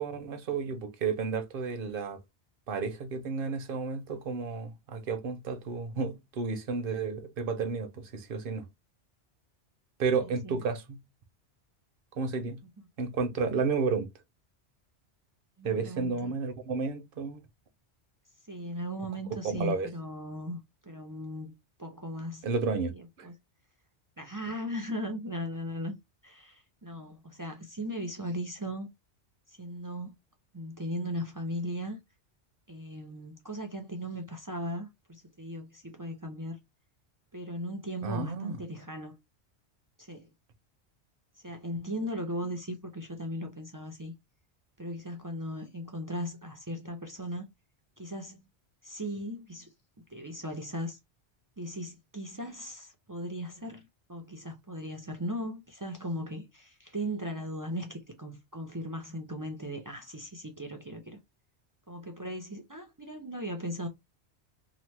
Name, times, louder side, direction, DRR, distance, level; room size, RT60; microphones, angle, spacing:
voice 1, 0.0-2.2 2.7-8.6 10.0-11.0 12.2-12.6 13.0-14.1 15.6-17.4 19.4-19.9 22.4-23.3 38.0-38.6, right 5 dB, 60° right, 0.8 m, -32 dB
voice 2, 10.2-10.6 15.6-16.3 18.5-21.5 21.8-22.4 22.9-23.3 24.2-25.9 26.2-28.9 29.5-30.2 30.5-32.0 32.7-36.6 37.3-39.2 40.0-40.3 41.4-44.1 44.8-47.5 48.0-48.5 48.8-51.0 51.6-61.2 61.9-63.9, equal, 30° right, 0.4 m, -38 dB
2.9 x 2.1 x 3.1 m
omnidirectional pair, 1.1 m